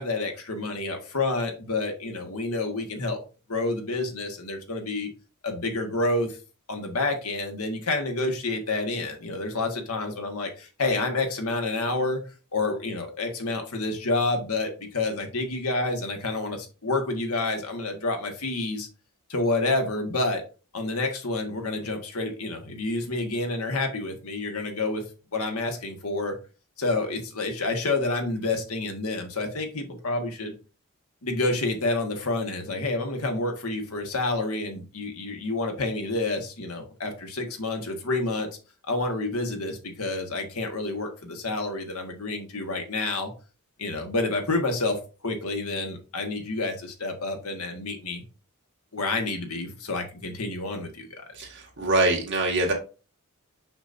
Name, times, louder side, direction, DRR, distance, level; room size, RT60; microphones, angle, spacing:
voice 1, 0.0-3.2 3.5-5.1 5.4-6.4 6.7-12.2 12.5-18.9 19.3-20.4 20.7-25.0 25.3-26.4 26.8-30.5 31.2-38.5 38.9-43.3 43.8-48.2 48.9-51.2, left 2 dB, 75° left, 4 dB, 1.6 m, -29 dB
voice 2, 51.3-52.7, right 2 dB, 55° right, 0 dB, 2.1 m, -24 dB
6.0 x 6.0 x 2.7 m, 0.33 s
head